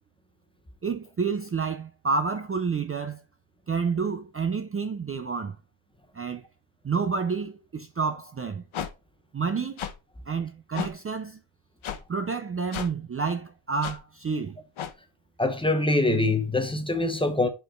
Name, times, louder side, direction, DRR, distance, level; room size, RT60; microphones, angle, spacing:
voice 1, 0.8-3.2 3.7-5.6 6.1-6.4 6.8-8.6 9.3-9.8 10.3-11.4 12.1-14.6, right 5 dB, 30° right, 0.5 m, -29 dB
sound 1, 8.7-8.9 9.8-9.9 10.7-10.9 11.8-12.0 12.7-12.9 13.8-14.0 14.8-14.9, left 9 dB, 80° left, 1.0 m, -33 dB
voice 2, 15.4-17.5, left 2 dB, 10° left, 0.7 m, -24 dB
5.3 x 4.4 x 4.5 m
wide cardioid pair, 165°, 47 cm